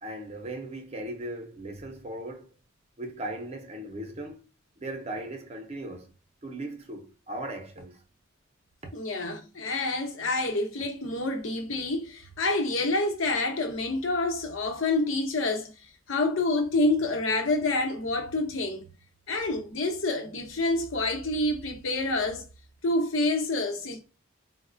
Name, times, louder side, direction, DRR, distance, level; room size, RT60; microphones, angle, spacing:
voice 1, 0.0-2.5 3.0-4.4 4.8-6.1 6.4-8.0 8.8-8.9, right 1 dB, 30° right, 0.6 m, -38 dB
voice 2, 8.9-15.7 16.1-18.9 19.3-22.5 22.8-24.0, left 2 dB, 80° left, 0.8 m, -27 dB
4.0 x 2.1 x 2.5 m
head